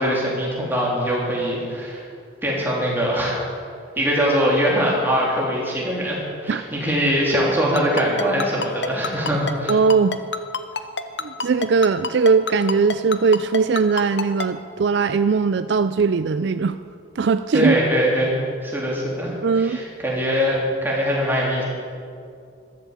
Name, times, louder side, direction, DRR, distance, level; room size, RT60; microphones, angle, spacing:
voice 1, 0.0-2.0 2.4-3.4 4.0-9.8 17.5-21.6, equal, 10° right, -4 dB, 3.5 m, -22 dB
Ringtone, 7.8-14.5, left 4 dB, 60° left, 0.8 m, -26 dB
voice 2, 9.7-10.2 11.2-16.8 17.2-17.7 19.4-19.8, right 5 dB, 60° right, 12 dB, 0.4 m, -19 dB
14.5 x 12.5 x 7.4 m, 2.4 s
head